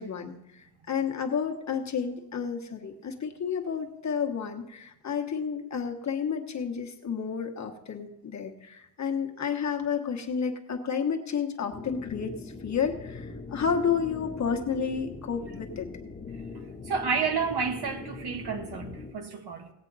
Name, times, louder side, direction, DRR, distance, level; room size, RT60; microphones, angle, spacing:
voice 1, 0.0-15.9, left 6 dB, 40° left, 1.2 m, -31 dB
sound 1, 11.7-19.1, left 3 dB, 20° left, 1.1 m, -41 dB
voice 2, 16.8-19.7, right 5 dB, 70° right, 1.4 m, -31 dB
18.0 x 8.0 x 4.0 m
wide cardioid pair, 140°, 41 cm